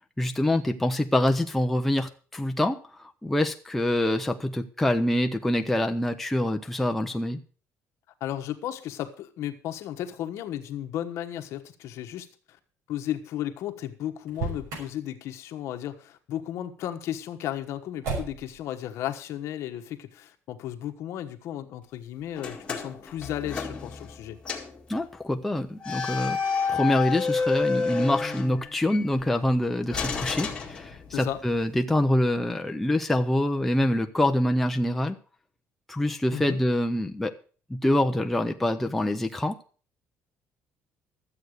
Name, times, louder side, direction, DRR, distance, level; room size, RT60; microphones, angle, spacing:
voice 1, 0.2-7.4 24.9-26.4 26.7-35.2 35.9-37.3 37.7-39.5, left 1 dB, 5° left, 5 dB, 0.6 m, -25 dB
voice 2, 8.2-12.3 12.9-24.4 31.1-31.4 36.3-36.6, left 11 dB, 60° left, 7 dB, 1.3 m, -34 dB
Motor vehicle (road), 14.2-15.0 18.0-18.6, right 4 dB, 85° right, 6.2 m, -33 dB
sound 1, 22.4-24.2 24.5-24.8 25.8-29.0 29.9-31.3, left 5 dB, 20° left, 1.9 m, -30 dB
12.5 x 8.0 x 6.5 m, 0.40 s
cardioid pair, 170°, 5 cm